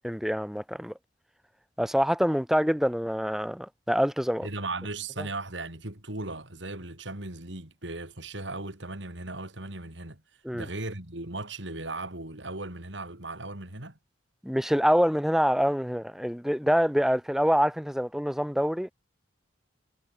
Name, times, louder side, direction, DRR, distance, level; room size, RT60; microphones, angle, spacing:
voice 1, 0.0-0.9 1.8-4.5 5.2-5.3 10.4-10.7 14.4-18.9, equal, ahead, 3.5 m, -25 dB
voice 2, 4.4-10.2 10.5-14.0, right 2 dB, 70° right, 4.1 m, -37 dB
head